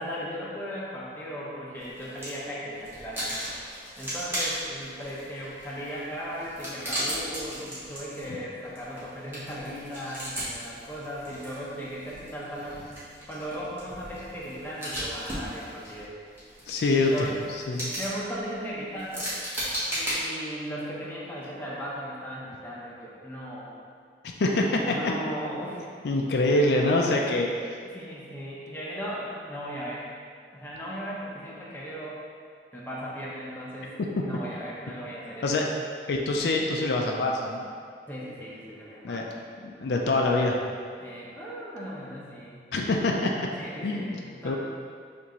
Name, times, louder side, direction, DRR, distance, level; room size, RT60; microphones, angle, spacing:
voice 1, 0.0-3.3 4.0-12.9 13.3-16.1 16.9-19.3 19.9-23.7 24.8-25.9 27.2-27.4 27.8-30.1 30.5-32.2 32.7-33.9 34.2-35.5 38.1-39.3 41.0-42.6 43.6-44.6, equal, 10° left, -7 dB, 0.7 m, -37 dB
sound 1, 1.8-2.4 2.8-20.1, equal, 15° right, 1.2 m, -36 dB
voice 2, 16.7-17.3 17.7-17.9 24.4-24.9 26.0-27.5 34.2-34.3 35.4-35.7 36.1-37.7 39.0-39.3 39.6-40.6 42.7-43.5 43.8-44.6, left 2 dB, 70° left, 0 dB, 0.4 m, -25 dB
6.9 x 2.6 x 3.0 m, 2.1 s
head